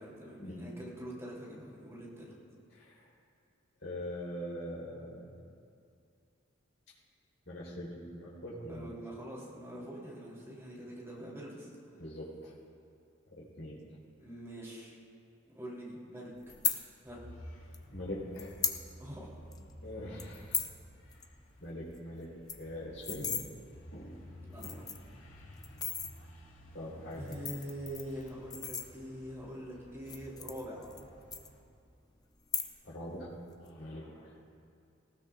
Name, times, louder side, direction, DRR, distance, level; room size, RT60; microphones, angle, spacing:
voice 1, 0.0-2.3 8.7-11.7 14.2-15.0 15.4-16.3 17.0-17.2 19.0-19.3 24.4-24.6 27.1-30.9, equal, 15° right, -6 dB, 3.2 m, -44 dB
voice 2, 2.7-3.0 3.8-5.4 7.5-8.9 12.0-12.5 13.3-13.8 17.9-18.6 19.8-20.6 21.6-22.3 22.6-23.3 23.9-24.2 24.6-24.8 26.7-27.4 32.8-33.3 33.6-34.3, equal, 70° left, -6 dB, 4.0 m, -42 dB
sound 1, 16.5-16.8 17.7-17.8 18.4-18.8 19.2-19.3 19.5-19.7 20.2-20.7 21.1-21.2 21.5-21.6 21.9-22.0 22.3-23.4 24.1-24.2 24.5-25.1 25.6-26.1 27.1-29.3 30.0-31.0 31.3-31.9 32.4-33.0 33.3-33.7, left 6 dB, 20° left, 0.6 m, -36 dB
sound 2, 17.1-31.6, equal, 90° left, 2.2 m, -53 dB
19.0 x 17.5 x 2.5 m, 2.5 s
head